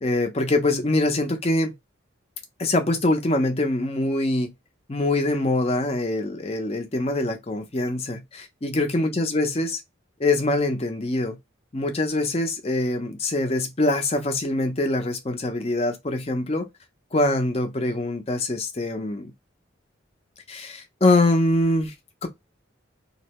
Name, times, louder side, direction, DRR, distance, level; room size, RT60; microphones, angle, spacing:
voice 1, 0.0-1.7 2.6-4.5 4.9-9.8 10.2-11.4 11.7-16.7 17.1-19.3 20.5-21.9 22.2-22.3, left 2 dB, 30° left, 0.6 m, -24 dB
2.7 x 2.1 x 2.8 m
head